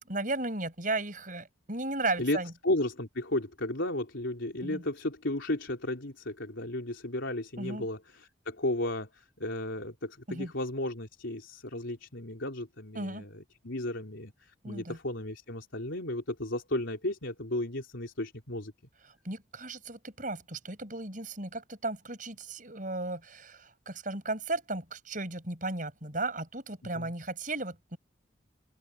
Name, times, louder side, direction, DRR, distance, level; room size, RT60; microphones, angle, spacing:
voice 1, 0.1-2.5 4.6-4.8 7.6-7.9 10.3-10.5 13.0-13.3 14.6-15.0 19.2-28.0, right 2 dB, 45° right, 7.2 m, -35 dB
voice 2, 2.2-18.7 26.9-27.1, left 1 dB, 80° left, 3.6 m, -34 dB
open air
head